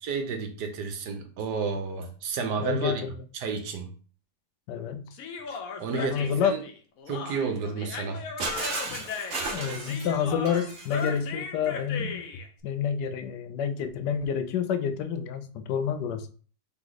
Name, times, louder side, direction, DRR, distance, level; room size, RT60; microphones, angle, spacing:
voice 1, 0.0-3.0 3.3-3.9 5.5-6.6 7.1-8.2, right 5 dB, 80° right, 5 dB, 1.4 m, -31 dB
voice 2, 2.6-3.1 4.7-5.1 5.9-6.5 8.9-9.0 9.5-12.2 12.6-16.3, left 7 dB, 85° left, 9 dB, 1.2 m, -28 dB
Human voice, 5.1-12.5, left 5 dB, 65° left, 1.0 m, -37 dB
Shatter, 8.4-11.2, right 2 dB, 55° right, 1.1 m, -34 dB
3.9 x 3.1 x 3.9 m, 0.41 s
omnidirectional pair, 1.8 m